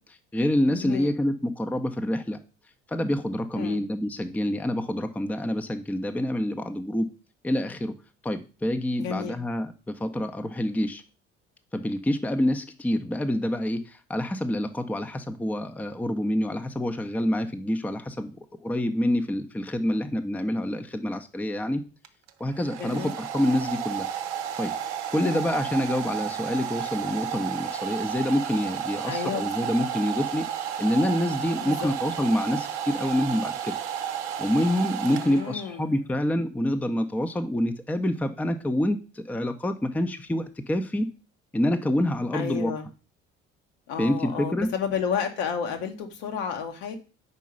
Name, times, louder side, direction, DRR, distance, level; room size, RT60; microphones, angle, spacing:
voice 1, 0.0-2.4 2.9-7.1 7.4-8.0 8.2-11.0 11.7-21.8 22.4-24.1 24.6-24.7 25.1-30.4 30.8-33.7 34.4-41.1 41.5-42.7 44.0-44.7, left 1 dB, 5° left, 8 dB, 0.6 m, -27 dB
voice 2, 0.7-1.2 3.6-3.8 9.0-9.4 22.8-23.1 25.2-25.5 29.1-29.4 31.6-31.9 35.1-35.8 42.3-42.9 43.9-47.0, left 7 dB, 65° left, 5 dB, 1.1 m, -31 dB
Domestic sounds home sounds, 22.0-35.8, right 9 dB, 75° right, 0.7 m, -32 dB
5.4 x 4.6 x 5.3 m, 0.35 s
figure-of-eight pair, 50°, 35 cm